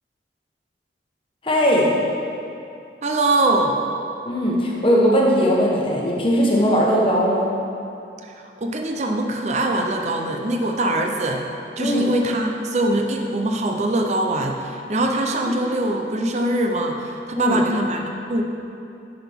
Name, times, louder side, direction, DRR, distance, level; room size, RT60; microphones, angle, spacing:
voice 1, 1.4-2.0 4.2-7.5 11.8-12.1 17.4-17.6, equal, 30° left, -3 dB, 1.1 m, -19 dB
voice 2, 3.0-3.8 8.2-11.4 11.8-18.4, right 1 dB, 40° right, 2 dB, 0.5 m, -23 dB
10.0 x 5.9 x 3.5 m, 2.7 s
head